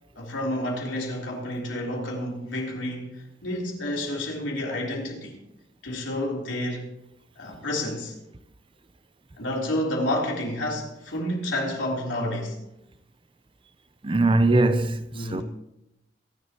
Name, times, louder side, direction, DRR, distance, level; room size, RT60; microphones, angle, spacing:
voice 1, 0.2-5.4 5.8-6.9 7.4-8.1 9.4-12.6 15.1-15.4, left 1 dB, 85° left, 3.7 m, -30 dB
voice 2, 14.0-15.4, right 2 dB, 25° right, 0.6 m, -21 dB
23.5 x 11.0 x 3.0 m
head